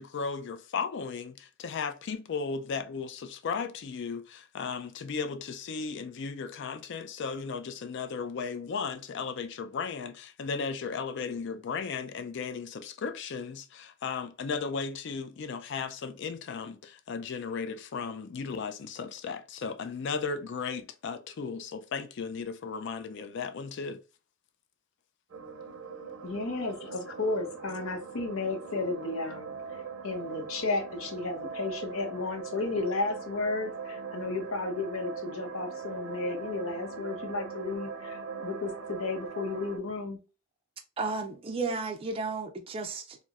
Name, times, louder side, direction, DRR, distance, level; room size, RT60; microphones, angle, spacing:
voice 1, 0.0-24.0, left 5 dB, 55° left, 0.4 m, -35 dB
sound 1, 25.3-39.8, right 5 dB, 80° right, 0.6 m, -41 dB
voice 2, 26.2-29.5 30.0-40.2, left 3 dB, 80° left, 0.8 m, -33 dB
voice 3, 41.0-43.2, right 3 dB, 25° right, 0.3 m, -33 dB
4.3 x 2.0 x 2.4 m
head